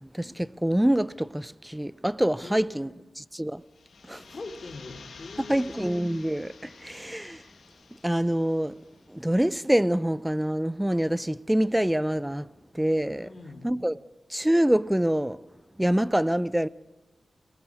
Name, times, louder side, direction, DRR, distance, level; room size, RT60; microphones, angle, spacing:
voice 1, 0.0-2.9 3.2-3.6 4.1-4.2 5.5-7.4 8.0-8.8 9.1-12.5 12.7-13.3 13.6-14.0 14.3-15.4 15.8-16.7, right 1 dB, 10° right, 0.7 m, -25 dB
voice 2, 2.4-3.0 4.3-5.8 13.2-13.7, left 3 dB, 55° left, 3.8 m, -43 dB
sound 1, 3.6-9.3, left 5 dB, 80° left, 2.1 m, -50 dB
28.5 x 20.5 x 6.5 m
cardioid pair, 55°, 0 cm